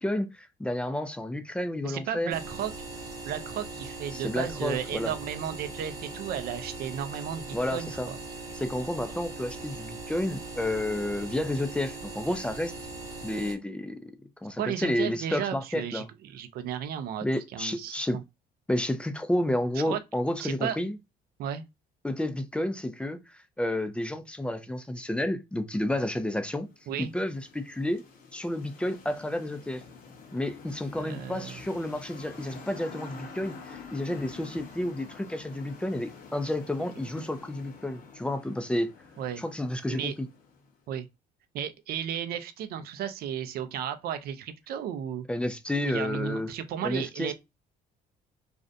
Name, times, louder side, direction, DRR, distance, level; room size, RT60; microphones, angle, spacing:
voice 1, 0.0-2.3 4.1-5.1 7.5-8.1 8.5-12.7 13.2-14.0 14.4-16.1 17.2-18.2 18.7-21.0 22.0-26.7 27.0-28.0 28.3-29.8 30.3-38.9 39.4-40.3 45.3-46.5 46.8-47.3, left 1 dB, 5° left, 0.3 m, -31 dB
voice 2, 1.8-2.7 3.2-8.1 14.6-17.3 17.5-18.2 19.9-20.0 20.4-20.8 21.4-21.6 26.9-27.1 30.9-31.6 39.2-39.4 39.9-40.1 40.9-41.1 41.5-45.3 45.8-47.3, right 9 dB, 65° right, 0.5 m, -34 dB
sound 1, 2.3-13.6, right 3 dB, 20° right, 0.8 m, -40 dB
sound 2, 26.3-40.8, left 5 dB, 60° left, 0.7 m, -48 dB
2.5 x 2.1 x 2.5 m
cardioid pair, 110°, 17 cm